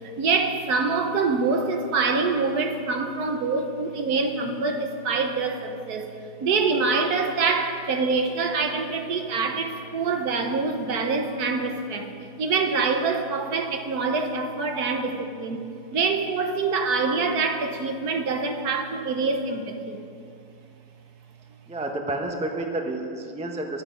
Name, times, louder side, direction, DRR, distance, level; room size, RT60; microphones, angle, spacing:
voice 1, 0.2-6.1 6.4-12.1 12.4-15.6 15.9-20.0, right 4 dB, 60° right, 5 dB, 1.3 m, -25 dB
voice 2, 21.7-23.8, right 2 dB, 10° right, 2 dB, 0.4 m, -30 dB
15.0 x 11.5 x 5.1 m, 2.5 s
omnidirectional pair, 2.1 m